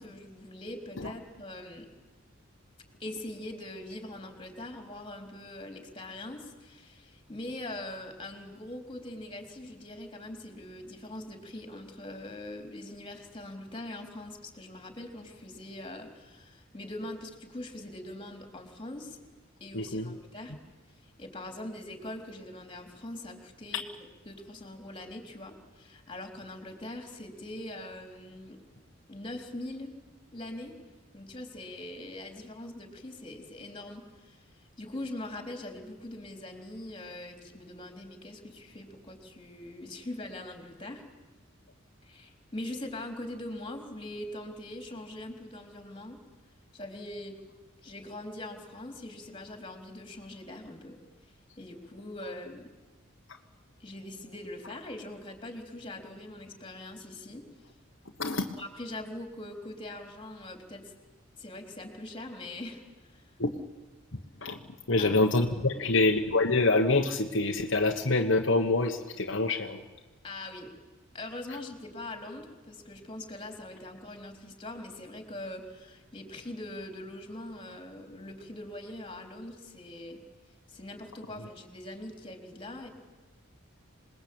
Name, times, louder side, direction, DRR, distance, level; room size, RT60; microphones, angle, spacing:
voice 1, 0.0-1.9 3.0-19.2 19.6-20.5 21.0-23.8 24.3-28.6 29.1-29.9 30.3-30.7 31.1-41.0 42.0-46.2 46.7-47.4 47.8-51.0 51.2-52.7 53.8-57.4 58.6-60.9 61.4-63.3 65.0-65.2 65.7-66.0 70.2-70.7 71.1-80.2 80.7-82.9, left 1 dB, 25° left, 4 dB, 3.8 m, -42 dB
voice 2, 19.7-20.1 23.7-23.8 58.2-58.5 63.4-63.5 64.1-64.6 64.9-69.8, left 2 dB, 60° left, 3 dB, 1.4 m, -26 dB
27.0 x 20.5 x 8.8 m, 1.2 s
head